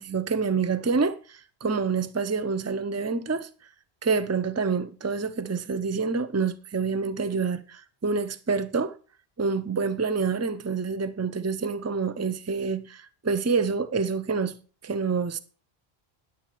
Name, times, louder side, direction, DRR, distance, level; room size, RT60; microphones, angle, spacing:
voice 1, 0.0-3.5 4.0-8.9 9.4-14.5 14.8-15.4, right 5 dB, 15° right, 0.6 m, -27 dB
10.0 x 8.6 x 4.5 m
omnidirectional pair, 1.1 m